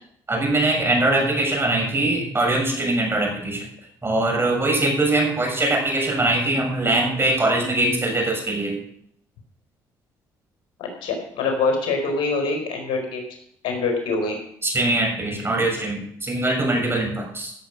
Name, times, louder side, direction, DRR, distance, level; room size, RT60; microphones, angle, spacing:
voice 1, 0.3-3.6 4.0-8.8 14.6-17.5, right 2 dB, 25° right, 2 dB, 6.9 m, -22 dB
voice 2, 10.8-13.2 13.6-14.4, left 3 dB, 75° left, 3 dB, 4.6 m, -24 dB
16.0 x 8.0 x 6.3 m, 0.70 s
supercardioid pair, 60°, 9 cm